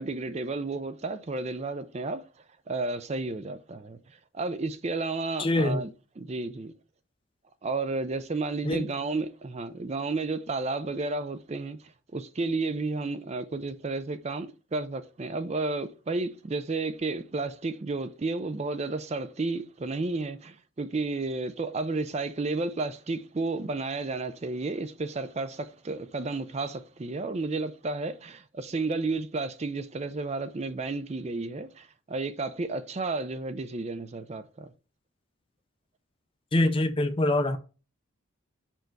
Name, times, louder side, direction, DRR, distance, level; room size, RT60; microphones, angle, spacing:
voice 1, 0.0-2.3 2.7-5.9 6.2-6.7 7.6-34.7, right 3 dB, 30° right, 0.4 m, -32 dB
voice 2, 5.4-5.8 8.6-8.9 36.5-37.6, left 1 dB, 25° left, 0.5 m, -24 dB
5.4 x 4.4 x 4.6 m
head